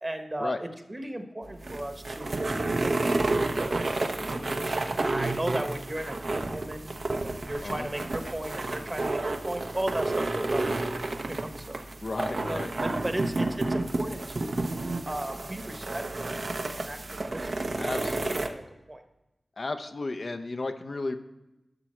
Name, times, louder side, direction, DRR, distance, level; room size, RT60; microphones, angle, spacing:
voice 1, 0.0-6.9 7.2-11.0 11.2-11.8 12.5-14.6 15.0-17.0 17.2-17.9 18.3-19.0, right 1 dB, 30° right, 7 dB, 1.1 m, -36 dB
sound 1, 1.4-18.5, right 2 dB, 65° right, 0.8 m, -30 dB
voice 2, 12.0-12.7 17.8-18.4 19.6-21.2, left 2 dB, 60° left, 7 dB, 0.6 m, -33 dB
12.0 x 6.0 x 4.4 m, 0.98 s
cardioid pair, 40°, 0 cm